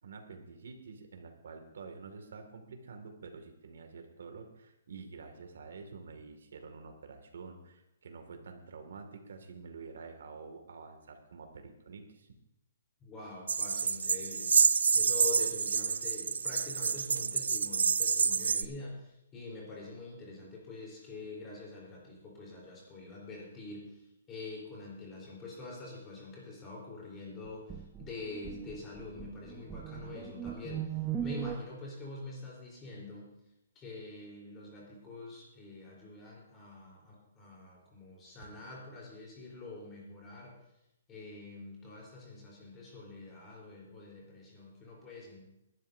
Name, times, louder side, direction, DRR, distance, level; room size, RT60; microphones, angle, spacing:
voice 1, 0.0-12.3, right 4 dB, 75° right, 5 dB, 2.1 m, -48 dB
voice 2, 13.0-33.3 33.7-40.5 41.1-45.4, left 2 dB, 15° left, -4 dB, 3.9 m, -45 dB
sound 1, 13.5-18.6, right 6 dB, 90° right, 0.5 m, -28 dB
sound 2, 27.4-31.6, right 10 dB, 10° right, 0.5 m, -39 dB
19.5 x 12.0 x 2.7 m, 0.85 s
hypercardioid pair, 170°, 0 cm